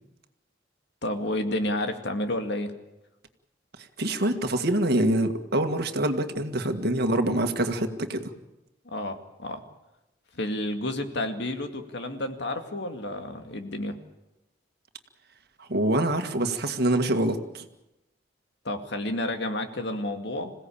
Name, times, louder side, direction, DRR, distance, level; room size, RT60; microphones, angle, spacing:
voice 1, 1.0-2.7 8.9-9.6 10.3-14.0 18.6-20.5, left 1 dB, 65° left, 6 dB, 2.3 m, -30 dB
voice 2, 4.0-8.3 15.6-17.7, right 1 dB, 60° right, 7 dB, 1.9 m, -25 dB
27.0 x 17.0 x 8.7 m, 0.96 s
head